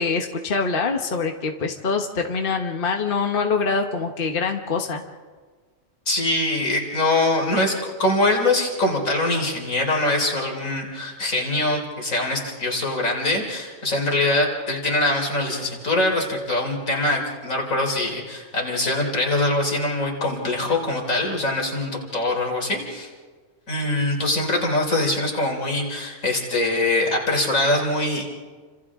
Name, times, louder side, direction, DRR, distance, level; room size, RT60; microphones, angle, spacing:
voice 1, 0.0-5.0, left 4 dB, 45° left, 4 dB, 1.4 m, -24 dB
voice 2, 6.1-23.1 23.7-28.3, left 2 dB, 80° left, 0 dB, 4.1 m, -23 dB
30.0 x 26.5 x 3.7 m, 1.5 s
omnidirectional pair, 1.4 m